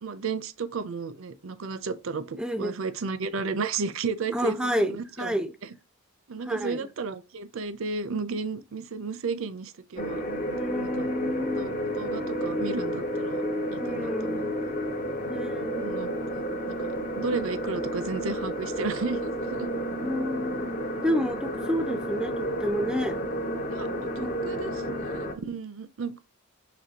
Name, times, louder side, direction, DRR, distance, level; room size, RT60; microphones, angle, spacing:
voice 1, 0.0-5.4 6.3-10.2 10.8-11.1 11.6-13.4 13.7-14.4 15.8-16.9 17.1-19.7 23.7-26.2, right 4 dB, 65° right, 0.5 m, -33 dB
voice 2, 2.4-2.7 4.3-5.5 6.5-6.9 10.5-11.7 13.8-14.5 15.3-15.9 20.0-20.7 21.0-23.2 24.2-24.6, equal, 5° right, 0.4 m, -30 dB
sound 1, 10.0-25.3, equal, 40° left, 0.7 m, -31 dB
6.0 x 3.1 x 2.8 m
head